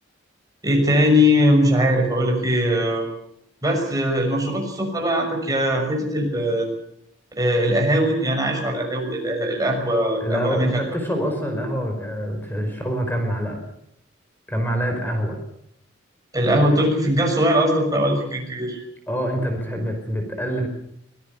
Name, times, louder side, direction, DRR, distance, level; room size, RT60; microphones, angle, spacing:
voice 1, 0.6-3.1 3.6-6.7 7.4-10.8 16.3-18.8, equal, 20° right, 1 dB, 6.4 m, -20 dB
voice 2, 10.2-13.6 14.5-15.4 19.1-20.7, equal, 10° left, 4 dB, 5.0 m, -25 dB
25.5 x 18.0 x 7.0 m, 0.73 s
head